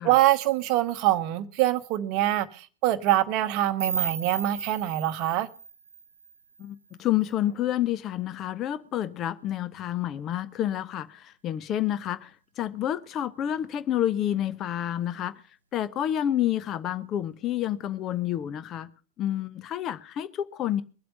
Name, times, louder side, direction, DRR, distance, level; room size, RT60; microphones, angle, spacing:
voice 1, 0.0-5.5, right 14 dB, 40° right, 0.9 m, -24 dB
sound 1, 3.8-6.7, right 6 dB, 70° right, 1.1 m, -34 dB
voice 2, 6.6-12.3 12.6-15.4 15.7-18.9 19.2-20.8, left 11 dB, 30° left, 0.8 m, -29 dB
22.5 x 7.8 x 5.3 m
figure-of-eight pair, 90°, 0 cm